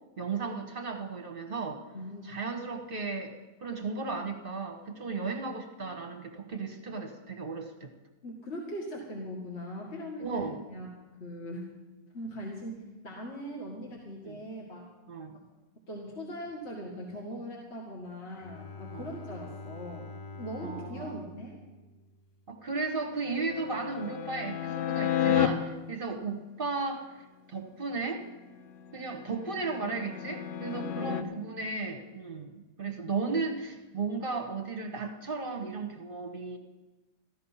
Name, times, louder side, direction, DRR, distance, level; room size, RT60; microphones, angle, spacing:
voice 1, 0.2-1.8 2.2-3.3 3.6-7.9 10.2-10.6 14.2-14.4 15.1-15.3 18.9-19.1 20.6-21.2 22.5-28.3 28.9-36.6, right 4 dB, 35° right, 4 dB, 1.2 m, -35 dB
voice 2, 1.9-2.4 8.2-10.9 11.2-11.7 12.1-14.9 15.9-20.1 20.4-21.6 30.7-31.3, equal, 40° left, -2 dB, 2.1 m, -40 dB
Bowed string instrument, 18.3-22.8, left 2 dB, 85° left, 0.4 m, -46 dB
sound 1, 23.2-25.5 28.9-31.2, left 10 dB, 70° left, 1.2 m, -31 dB
14.5 x 13.5 x 5.6 m, 1.2 s
omnidirectional pair, 1.7 m